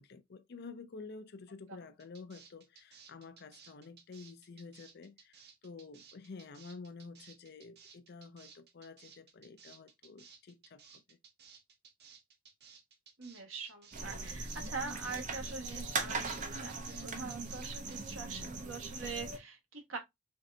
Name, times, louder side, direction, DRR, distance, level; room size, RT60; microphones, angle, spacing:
voice 1, 0.0-11.2, left 4 dB, 55° left, 0.5 m, -50 dB
sound 1, 2.0-18.1, right 6 dB, 55° right, 1.1 m, -58 dB
voice 2, 13.2-20.0, right 4 dB, 85° right, 1.6 m, -43 dB
sound 2, 13.9-19.4, right 3 dB, 40° right, 0.8 m, -40 dB
4.5 x 3.7 x 2.7 m
head